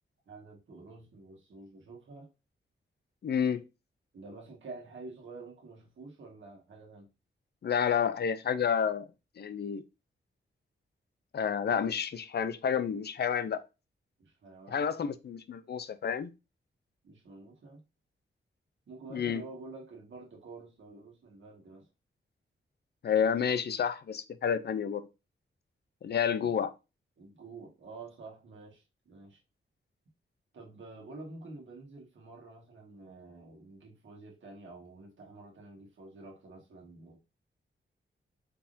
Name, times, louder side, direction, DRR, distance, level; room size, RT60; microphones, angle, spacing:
voice 1, 0.2-2.3 4.1-7.1 14.2-14.9 17.0-17.8 18.9-21.9 26.4-26.6 27.2-29.4 30.5-37.2, right 3 dB, 70° right, 1.6 m, -49 dB
voice 2, 3.2-3.6 7.6-9.1 9.4-9.8 11.3-13.6 14.7-16.3 19.1-19.4 23.0-25.0 26.0-26.7, left 7 dB, 50° left, 0.5 m, -30 dB
4.6 x 3.6 x 2.6 m
wide cardioid pair, 105°, 21 cm